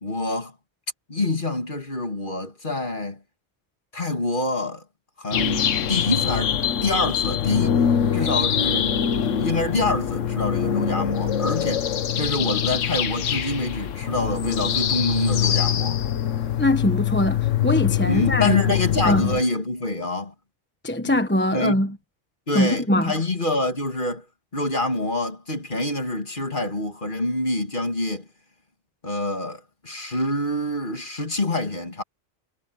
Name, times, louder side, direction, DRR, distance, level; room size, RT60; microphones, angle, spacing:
voice 1, 0.0-0.5 1.1-3.2 3.9-4.8 5.2-7.8 8.1-9.0 9.4-11.9 12.2-16.0 18.1-20.3 21.0-21.2 21.5-21.9 22.5-24.2 24.5-28.3 29.0-32.0, left 2 dB, 40° left, 2.9 m, -26 dB
sound 1, 5.3-19.4, left 9 dB, 75° left, 1.3 m, -24 dB
voice 2, 16.6-18.8 19.0-19.3 20.8-21.9 22.5-23.1, left 1 dB, 10° left, 1.1 m, -22 dB
omnidirectional pair, 1.3 m